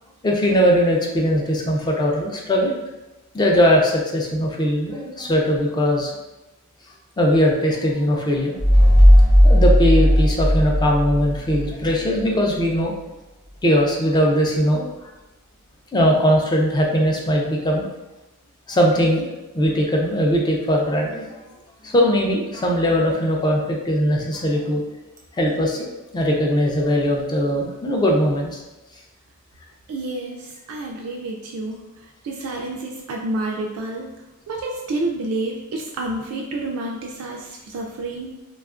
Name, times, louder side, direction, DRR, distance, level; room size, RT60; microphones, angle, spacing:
voice 1, 0.2-2.7 3.3-6.1 7.2-8.6 9.4-12.9 13.6-14.8 15.9-17.9 18.7-19.3 19.5-21.3 21.8-24.8 25.4-25.9 26.1-28.6, equal, 20° left, -1 dB, 0.4 m, -20 dB
sound 1, 8.6-11.9, equal, 65° left, 0.9 m, -14 dB
voice 2, 29.9-31.8 32.2-34.1 34.5-38.3, right 2 dB, 85° right, 0 dB, 0.3 m, -29 dB
2.8 x 2.3 x 2.3 m, 1.0 s
head